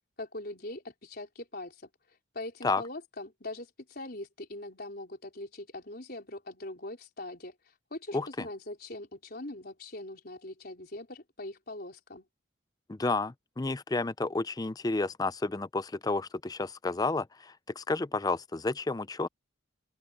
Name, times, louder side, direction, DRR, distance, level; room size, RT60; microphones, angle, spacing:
voice 1, 0.2-1.9 2.3-7.5 7.9-12.3, left 2 dB, 50° left, 4.5 m, -42 dB
voice 2, 8.1-8.5 12.9-19.3, left 3 dB, 20° left, 0.4 m, -31 dB
open air
head